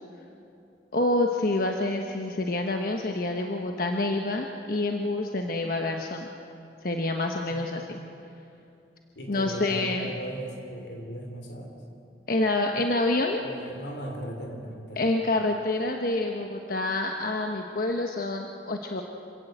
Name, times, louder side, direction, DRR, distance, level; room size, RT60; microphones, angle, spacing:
voice 1, 0.9-6.3 6.8-8.0 9.3-10.1 12.3-13.4 15.0-19.0, left 2 dB, 55° left, 3 dB, 1.2 m, -27 dB
voice 2, 9.2-11.8 13.4-15.1, equal, 85° left, 3 dB, 3.6 m, -38 dB
26.0 x 16.5 x 8.0 m, 2.7 s
head